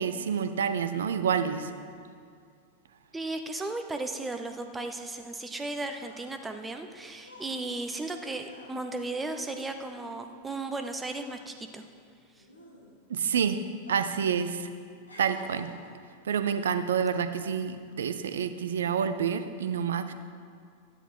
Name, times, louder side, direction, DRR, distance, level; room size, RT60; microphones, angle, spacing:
voice 1, 0.0-1.7 13.1-13.6 13.9-14.7 15.2-15.7 16.2-20.1, right 7 dB, 65° right, 11 dB, 0.6 m, -28 dB
voice 2, 3.1-11.8 12.4-12.5, right 2 dB, 10° right, 6 dB, 0.9 m, -35 dB
sound 1, 5.5-10.8 11.1-13.2 13.8-14.4 14.6-16.1 16.8-17.0, equal, 80° left, 1.9 m, -51 dB
12.5 x 10.0 x 4.3 m, 2.3 s
figure-of-eight pair, 90°, 0 cm